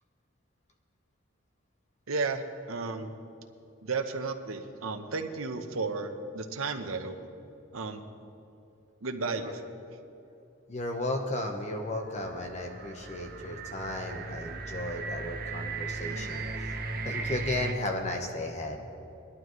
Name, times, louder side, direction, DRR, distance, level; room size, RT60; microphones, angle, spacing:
voice 1, 2.1-2.4 2.7-3.1 3.8-7.2 7.7-8.0 9.0-9.5, right 4 dB, 80° right, 6 dB, 0.9 m, -33 dB
voice 2, 10.7-16.7 17.0-18.8, left 1 dB, 35° left, 3 dB, 1.0 m, -34 dB
sound 1, 12.1-17.7, right 3 dB, 45° right, 0.8 m, -37 dB
20.0 x 11.5 x 3.1 m, 2.8 s
head